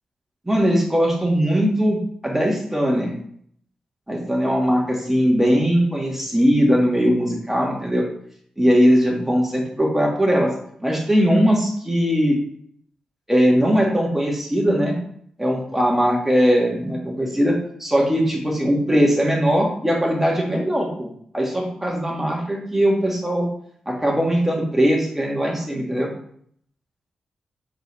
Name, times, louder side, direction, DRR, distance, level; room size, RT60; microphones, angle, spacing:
voice 1, 0.5-2.0 2.2-3.1 4.1-8.1 8.6-10.5 10.8-12.4 13.3-15.0 15.4-17.5 17.8-23.5 23.9-26.1, equal, 10° right, -1 dB, 1.9 m, -20 dB
4.6 x 4.0 x 5.5 m, 0.65 s
cardioid pair, 65°, 2 cm